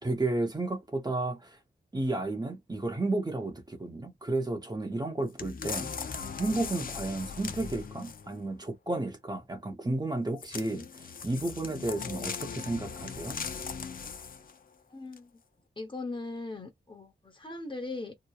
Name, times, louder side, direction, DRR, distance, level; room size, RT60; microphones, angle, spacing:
voice 1, 0.0-1.6 1.9-5.9 6.4-13.4, right 2 dB, 20° right, 0.7 m, -32 dB
sound 1, 5.4-8.4 10.4-14.6 15.1-15.2, left 6 dB, 50° left, 0.5 m, -39 dB
voice 2, 14.9-15.3 15.8-18.1, left 2 dB, 25° left, 0.9 m, -39 dB
2.8 x 2.1 x 2.3 m
wide cardioid pair, 95°, 18 cm